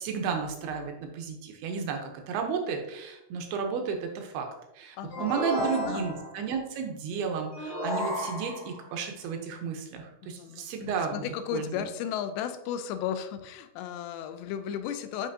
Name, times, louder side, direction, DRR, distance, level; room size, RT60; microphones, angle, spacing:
voice 1, 0.0-4.5 4.8-11.2 11.5-11.7, right 6 dB, 75° right, 3 dB, 2.6 m, -33 dB
voice 2, 5.0-6.1 10.2-10.7 11.1-15.3, left 9 dB, 85° left, 9 dB, 2.8 m, -35 dB
sound 1, 5.1-6.4 7.5-8.8, left 1 dB, 35° left, 1.6 m, -32 dB
10.0 x 5.0 x 2.7 m, 0.90 s
omnidirectional pair, 4.9 m